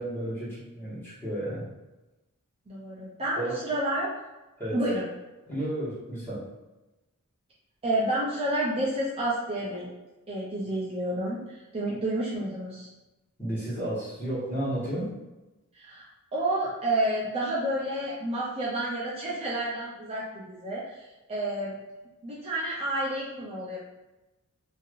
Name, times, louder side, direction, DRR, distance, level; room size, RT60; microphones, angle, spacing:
voice 1, 0.0-1.7 3.3-3.6 4.6-4.8 5.5-6.4 13.4-15.1, right 1 dB, 10° left, -10 dB, 1.3 m, -32 dB
voice 2, 2.7-4.1 4.7-5.1 7.8-9.9 10.3-11.4 11.7-12.9 15.7-16.1 16.3-21.8 22.2-23.8, right 1 dB, 25° right, -7 dB, 0.5 m, -30 dB
3.2 x 2.7 x 2.5 m, 1.0 s
head